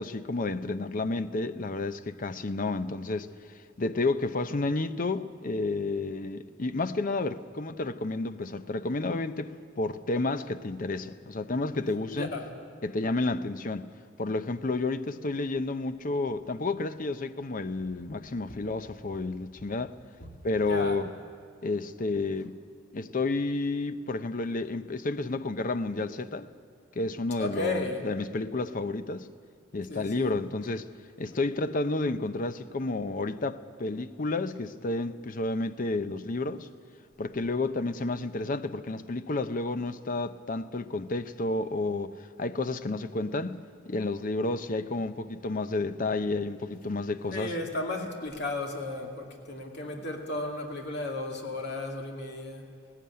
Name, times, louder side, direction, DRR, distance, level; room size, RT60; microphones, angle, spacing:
voice 1, 0.0-3.3 3.8-12.3 12.8-13.9 14.2-19.9 20.4-21.1 21.6-22.5 22.9-26.5 27.0-29.3 29.7-30.9 31.2-36.7 37.2-42.1 42.4-47.5, left 2 dB, 40° left, 0.6 m, -31 dB
voice 2, 12.1-12.5 20.2-20.3 20.5-21.0 27.4-28.0 29.9-30.3 47.3-52.7, left 2 dB, 60° left, 2.4 m, -34 dB
17.5 x 16.0 x 9.6 m
head